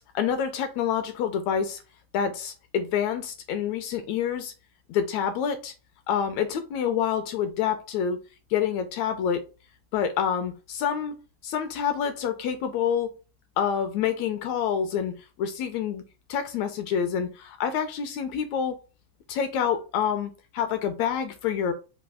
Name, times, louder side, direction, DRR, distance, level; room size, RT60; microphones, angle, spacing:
voice 1, 0.0-1.8 2.1-4.5 4.9-5.7 6.1-8.2 8.5-9.4 9.9-11.2 11.4-13.1 13.6-16.0 16.3-18.8 19.3-21.7, left 8 dB, 80° left, 1.7 m, -27 dB
5.2 x 2.6 x 3.5 m
omnidirectional pair, 3.6 m